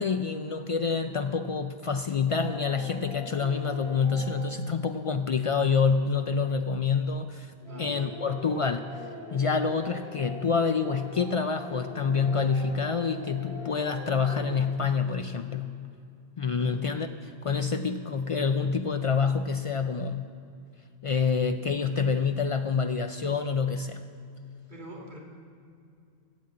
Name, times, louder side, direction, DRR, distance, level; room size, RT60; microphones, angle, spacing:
voice 1, 0.0-7.5 7.8-8.9 9.3-15.7 16.4-20.2 21.0-24.0, left 5 dB, 60° left, 8 dB, 0.3 m, -27 dB
sound 1, 2.3-4.7 7.6-14.6, left 1 dB, 80° left, 3.2 m, -42 dB
voice 2, 7.6-8.0 16.6-16.9 24.7-25.2, right 1 dB, 45° right, -3 dB, 2.1 m, -44 dB
13.0 x 7.4 x 8.7 m, 2.5 s
omnidirectional pair, 1.1 m